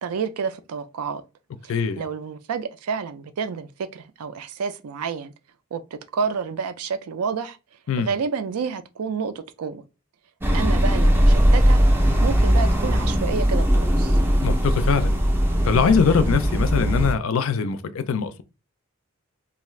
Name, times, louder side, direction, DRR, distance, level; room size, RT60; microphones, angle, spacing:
voice 1, 0.0-1.2 1.6-5.3 5.7-7.6 8.0-9.8 10.5-11.8 12.2-14.2, right 5 dB, 85° right, 0.4 m, -29 dB
voice 2, 1.7-2.0 7.9-8.1 14.4-15.2 15.6-18.4, left 6 dB, 65° left, 0.4 m, -22 dB
sound 1, 10.4-17.1, equal, 10° right, 0.4 m, -19 dB
2.6 x 2.4 x 3.1 m
head